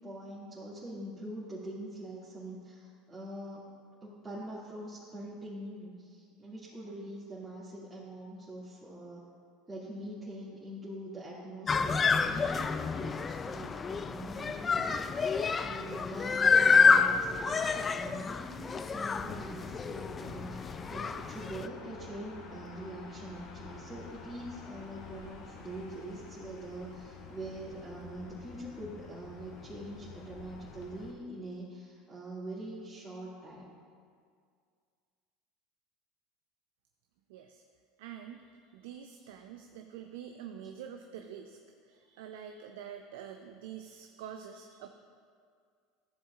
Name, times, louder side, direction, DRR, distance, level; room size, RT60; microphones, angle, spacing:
voice 1, 0.0-3.7 4.0-9.2 9.7-15.3 15.6-20.6 20.9-33.7, right 1 dB, 20° right, -10 dB, 2.3 m, -44 dB
sound 1, 11.7-21.7, left 5 dB, 30° left, 0.3 m, -28 dB
sound 2, 19.1-31.1, left 4 dB, 60° left, 1.0 m, -48 dB
voice 2, 37.3-37.6 38.0-41.6 41.9-44.9, right 8 dB, 75° right, 5 dB, 0.5 m, -46 dB
13.5 x 7.4 x 2.4 m, 2.1 s
hypercardioid pair, 85°, 0 cm